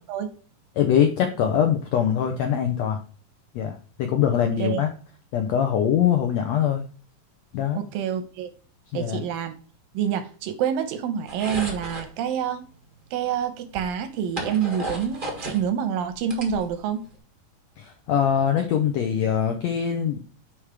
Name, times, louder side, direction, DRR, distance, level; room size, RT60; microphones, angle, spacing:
voice 1, 0.8-3.0 3.5-4.9 5.3-6.8 7.5-7.8 8.9-9.2 17.8-20.2, left 9 dB, 75° left, 5 dB, 1.6 m, -23 dB
voice 2, 7.8-8.5 8.9-9.5 9.9-12.7 13.1-17.0, right 8 dB, 85° right, 9 dB, 2.6 m, -27 dB
sound 1, 11.3-12.1 13.2-13.3 13.7-15.6 16.0-17.1, right 1 dB, 70° right, 0.5 m, -33 dB
8.7 x 3.6 x 4.9 m, 0.40 s
omnidirectional pair, 4.0 m